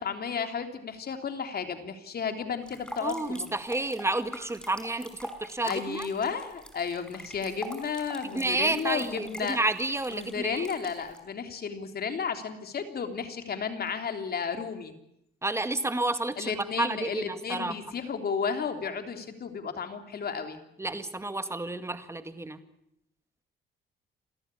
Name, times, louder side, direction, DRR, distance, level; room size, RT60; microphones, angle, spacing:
voice 1, 0.0-3.5 5.6-9.6 10.1-14.9 16.4-20.6, left 6 dB, 50° left, 7 dB, 3.4 m, -33 dB
sound 1, 2.6-11.2, equal, 5° left, 5.3 m, -44 dB
voice 2, 3.0-6.1 8.3-10.7 15.4-17.7 20.8-22.6, right 2 dB, 15° right, 10 dB, 2.1 m, -30 dB
29.0 x 13.5 x 9.9 m, 0.78 s
cardioid pair, 90°, 20 cm